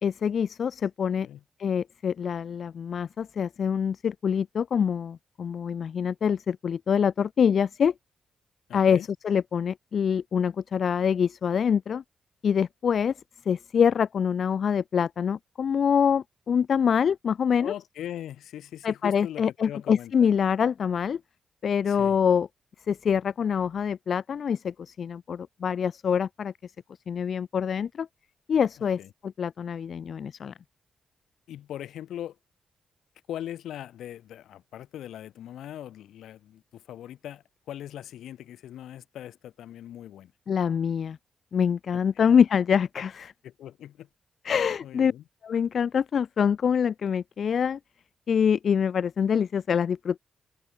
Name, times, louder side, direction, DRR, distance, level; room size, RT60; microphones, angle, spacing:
voice 1, 0.0-1.3 1.6-7.9 8.7-12.0 12.4-13.1 13.5-17.7 18.8-21.2 21.6-22.5 22.9-26.7 27.1-28.1 28.5-30.5 40.5-41.2 41.5-43.3 44.4-45.1 45.4-47.8 48.3-50.2, left 7 dB, 65° left, 0.3 m, -25 dB
voice 2, 8.7-9.1 17.6-20.1 21.9-22.2 29.0-29.1 31.5-32.4 33.3-40.3 41.9-42.4 43.4-44.1 44.5-45.2, left 11 dB, 80° left, 5.4 m, -40 dB
open air
supercardioid pair, 50°, 0 cm